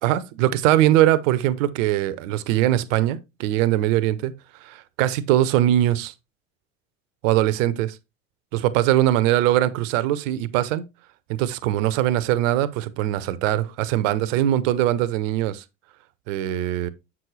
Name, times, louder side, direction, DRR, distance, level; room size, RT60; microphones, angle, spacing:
voice 1, 0.0-4.3 4.6-6.1 7.2-8.0 8.5-10.8 11.3-15.6 16.3-16.9, right 13 dB, 70° right, 0.8 m, -21 dB
7.5 x 6.1 x 3.1 m
hypercardioid pair, 75°, 40 cm